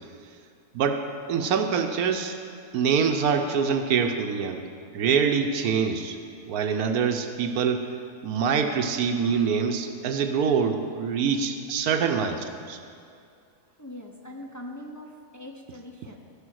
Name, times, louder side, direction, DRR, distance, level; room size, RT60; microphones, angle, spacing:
voice 1, 0.7-2.4 2.7-4.7 4.9-6.2 6.5-7.9 8.2-12.8, right 6 dB, 75° right, 6 dB, 1.1 m, -25 dB
voice 2, 13.8-16.2, left 1 dB, 20° left, 0 dB, 0.4 m, -41 dB
15.0 x 5.5 x 6.3 m, 2.4 s
omnidirectional pair, 1.6 m